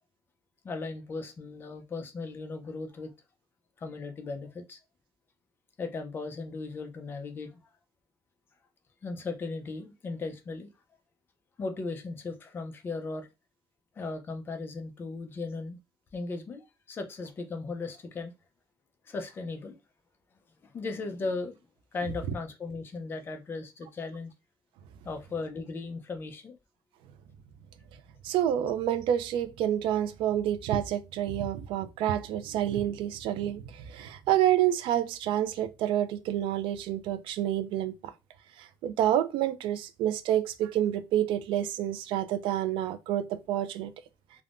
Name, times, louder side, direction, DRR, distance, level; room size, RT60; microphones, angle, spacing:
voice 1, 0.6-3.1 3.8-4.8 5.8-7.5 9.0-10.7 11.6-13.3 14.0-15.8 16.1-18.3 19.1-19.8 20.6-21.5 21.9-24.3 25.0-26.6, left 3 dB, 25° left, 0.4 m, -37 dB
voice 2, 28.2-38.1 38.6-43.9, right 11 dB, 75° right, 0.4 m, -28 dB
3.4 x 2.0 x 2.4 m
cardioid pair, 175°, 9 cm